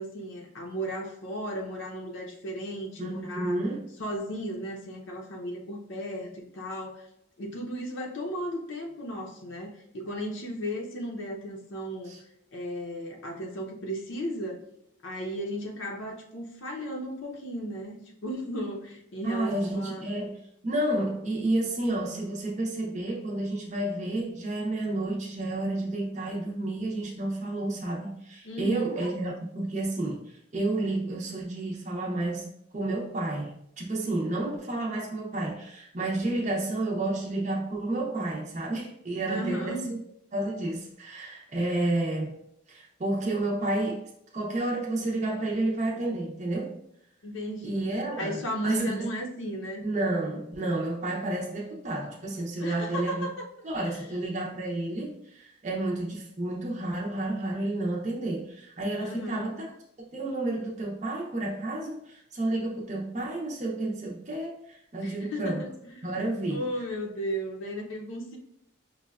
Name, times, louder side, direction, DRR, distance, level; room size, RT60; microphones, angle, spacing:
voice 1, 0.0-3.6 4.0-7.1 7.4-12.1 12.5-14.6 15.0-20.1 28.4-29.1 39.3-39.9 47.2-47.9 48.2-49.8 51.2-51.3 52.6-53.4 53.9-54.2 59.0-59.5 65.0-66.2 66.5-68.4, equal, 85° left, 0 dB, 0.6 m, -35 dB
voice 2, 3.0-3.9 12.0-12.2 19.2-40.0 40.3-42.4 42.7-46.8 47.6-49.1 49.8-53.3 53.6-59.7 60.0-65.6 66.0-66.6, right 2 dB, 35° right, -3 dB, 0.5 m, -31 dB
5.3 x 2.2 x 2.3 m, 0.76 s
head